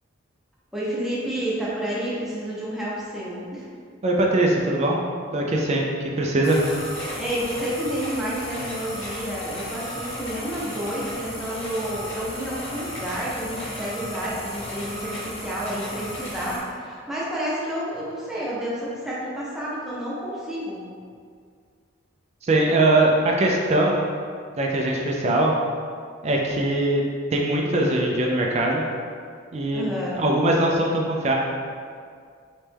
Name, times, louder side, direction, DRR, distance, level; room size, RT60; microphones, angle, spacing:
voice 1, 0.7-3.7 7.2-20.8 29.7-30.2, right 1 dB, ahead, -8 dB, 0.7 m, -30 dB
voice 2, 4.0-5.0 5.3-6.6 22.4-24.0 24.6-25.5 26.2-27.0 27.3-28.8 29.5-29.9 30.1-31.3, right 1 dB, 35° right, -1 dB, 0.3 m, -21 dB
sound 1, 6.4-16.6, left 1 dB, 30° left, 1.1 m, -34 dB
3.2 x 3.1 x 3.3 m, 2.1 s
head